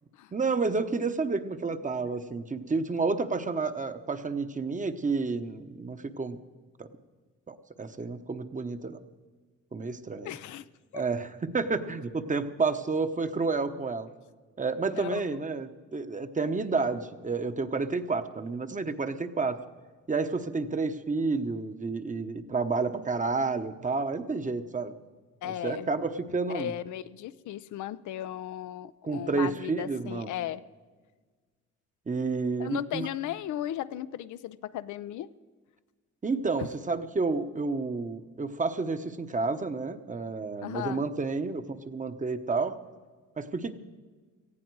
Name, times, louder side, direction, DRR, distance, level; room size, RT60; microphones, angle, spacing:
voice 1, 0.3-6.4 6.8-6.9 7.5-9.0 9.7-10.3 10.9-14.1 14.6-19.6 20.1-24.9 25.4-26.7 29.0-30.3 32.1-33.1 36.2-42.8 43.4-43.7, right 4 dB, 25° right, 9 dB, 1.0 m, -30 dB
voice 2, 10.2-10.7 10.9-11.0 14.9-15.2 25.4-25.9 26.5-30.6 32.6-35.3 40.6-41.1, left 12 dB, 75° left, 13 dB, 0.6 m, -36 dB
18.5 x 14.5 x 4.7 m, 1.4 s
cardioid pair, 90°, 30 cm